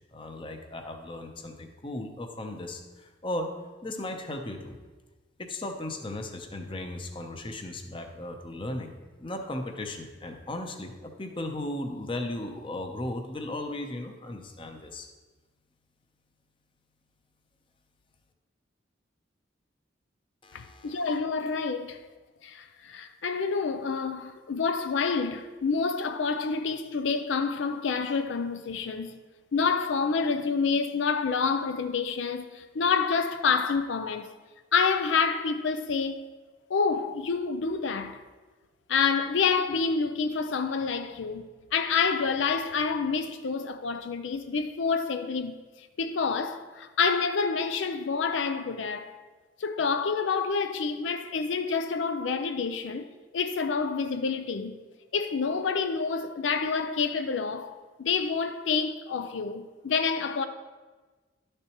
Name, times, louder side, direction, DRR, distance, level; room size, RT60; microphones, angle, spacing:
voice 1, 0.1-3.5 3.8-4.8 5.4-8.9 9.2-15.1 20.4-21.1, left 1 dB, 25° left, 0.7 m, -36 dB
voice 2, 20.5-22.0 22.4-29.2 29.5-34.3 34.7-36.3 36.7-38.2 38.9-41.4 41.7-45.6 46.0-49.2 49.6-54.7 55.1-60.5, left 5 dB, 85° left, 0.5 m, -28 dB
11.0 x 6.6 x 3.0 m
head